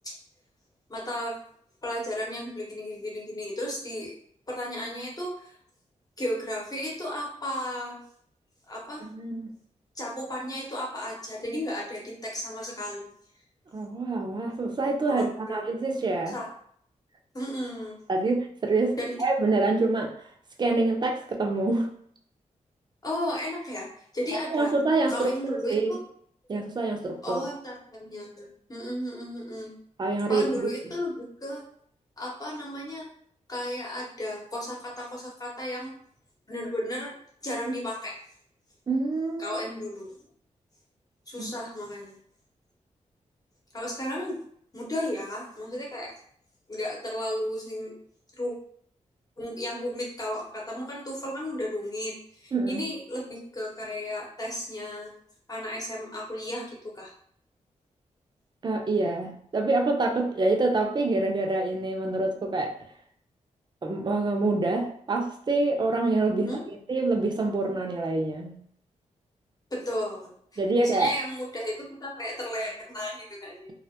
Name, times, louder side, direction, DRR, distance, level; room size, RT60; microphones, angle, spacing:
voice 1, 0.9-1.3 1.8-4.1 4.5-5.6 6.2-8.0 8.7-9.0 9.9-13.1 15.1-15.6 16.3-16.5 17.3-18.0 19.0-19.2 23.0-23.9 24.1-24.7 25.1-26.0 27.2-29.7 30.3-31.6 32.2-33.1 33.5-36.0 36.5-37.1 37.4-38.1 39.4-40.2 41.3-42.2 43.7-44.4 44.7-46.1 46.7-48.0 48.3-48.5 49.4-55.1 55.5-56.6 56.9-57.1 66.4-66.6 69.7-70.3 70.8-73.7, left 1 dB, 30° left, -3 dB, 1.0 m, -34 dB
voice 2, 9.0-9.5 13.7-16.4 18.1-20.1 20.6-21.9 24.5-26.0 26.5-27.4 30.0-30.7 38.9-39.6 41.4-41.5 52.5-52.8 58.6-62.7 63.8-68.6 70.6-71.1, right 2 dB, 35° right, 2 dB, 0.5 m, -26 dB
2.4 x 2.1 x 2.8 m, 0.63 s
cardioid pair, 75°, 13 cm